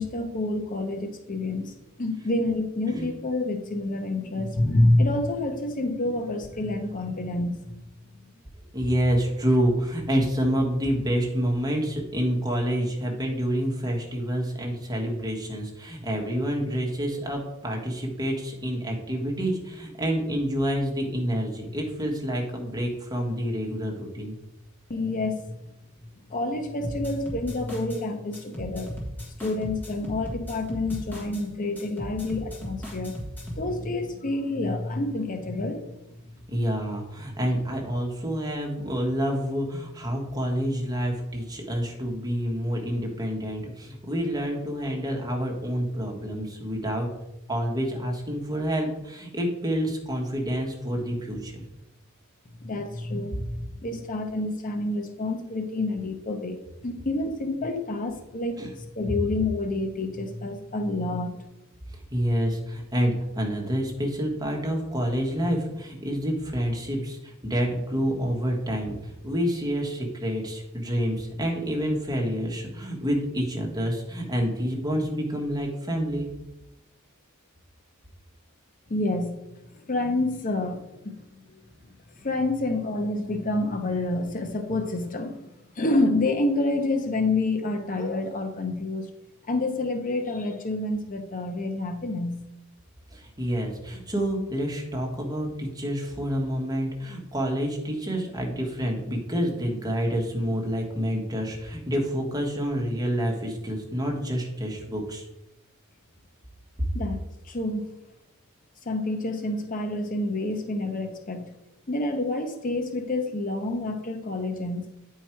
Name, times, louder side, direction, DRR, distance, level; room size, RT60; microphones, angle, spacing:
voice 1, 0.0-1.7 2.0-7.6 24.9-25.6 26.3-29.0 29.4-33.2 33.6-35.9 52.6-53.5 53.8-61.4 78.9-79.4 79.7-81.2 82.2-85.4 85.7-89.1 89.5-92.4 106.9-107.2 107.4-107.9 108.8-111.5 111.9-114.9, left 2 dB, 35° left, 5 dB, 0.7 m, -28 dB
voice 2, 8.7-24.4 36.5-47.1 47.5-51.6 58.6-58.7 61.9-76.3 93.1-105.3, equal, 20° right, 0 dB, 1.3 m, -28 dB
sound 1, 26.8-28.0 28.3-31.4 31.8-33.7, equal, 10° left, 1.6 m, -37 dB
9.0 x 4.7 x 4.5 m, 0.92 s
head